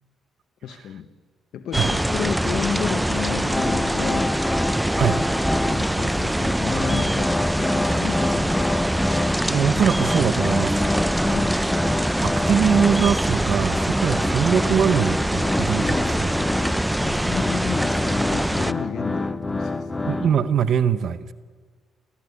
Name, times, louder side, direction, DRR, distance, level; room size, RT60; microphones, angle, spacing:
voice 1, 0.6-1.1 1.5-4.4 5.0-7.3 7.6-8.6 11.2-11.6 17.0-20.1, left 8 dB, 75° left, 6 dB, 1.0 m, -32 dB
sound 1, 1.7-18.7, right 1 dB, 5° right, 0.6 m, -23 dB
sound 2, 3.5-5.9 6.2-9.5 9.8-20.7, left 2 dB, 15° left, 0.9 m, -28 dB
voice 2, 9.4-10.8 12.2-16.4 20.1-21.3, right 8 dB, 65° right, 15 dB, 0.9 m, -22 dB
20.0 x 14.0 x 9.6 m, 1.5 s
cardioid pair, 90°, 0 cm